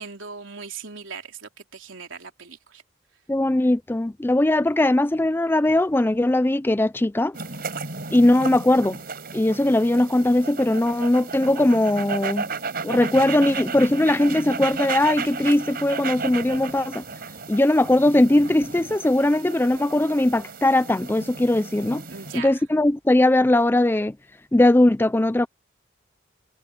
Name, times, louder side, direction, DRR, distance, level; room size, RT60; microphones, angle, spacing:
voice 1, 0.0-2.8 22.1-22.6, right 5 dB, 80° right, 3.4 m, -39 dB
voice 2, 3.3-7.4 8.1-9.0 9.3-12.5 12.8-17.0 17.5-22.0 22.3-24.2 24.5-25.5, left 1 dB, 10° left, 0.4 m, -20 dB
sound 1, 7.3-22.4, right 4 dB, 50° right, 4.8 m, -34 dB
head